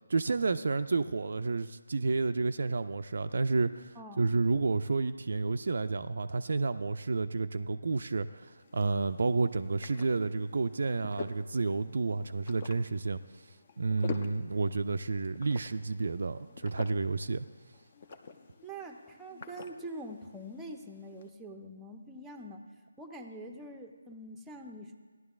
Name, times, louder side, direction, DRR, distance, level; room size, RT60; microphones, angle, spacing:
voice 1, 0.1-13.2 13.8-17.5, right 3 dB, 55° right, 9 dB, 0.3 m, -30 dB
voice 2, 4.0-4.4 18.6-22.7 23.0-25.0, right 1 dB, 5° right, 3 dB, 0.6 m, -44 dB
sound 1, 8.4-21.3, left 5 dB, 35° left, 0.6 m, -48 dB
17.0 x 11.0 x 2.4 m, 1.5 s
figure-of-eight pair, 150°, 0 cm